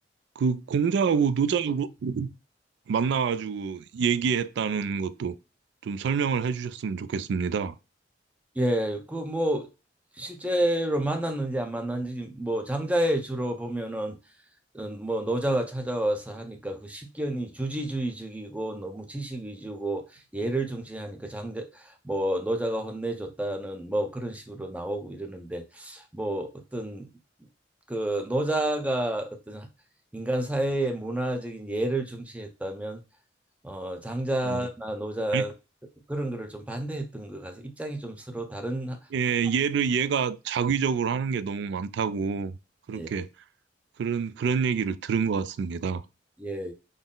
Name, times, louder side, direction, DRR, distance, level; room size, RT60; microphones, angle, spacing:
voice 1, 0.4-2.3 2.9-5.4 5.8-7.8 34.4-34.6 35.3-35.4 39.1-42.5 42.9-43.3 44.0-46.0, right 6 dB, 65° right, 0.3 m, -27 dB
voice 2, 8.6-9.7 10.2-14.2 14.7-27.1 27.9-29.7 30.1-33.0 33.6-35.5 36.1-39.0 42.9-43.1 46.4-46.7, right 1 dB, 10° right, 0.5 m, -30 dB
3.9 x 2.0 x 3.7 m
head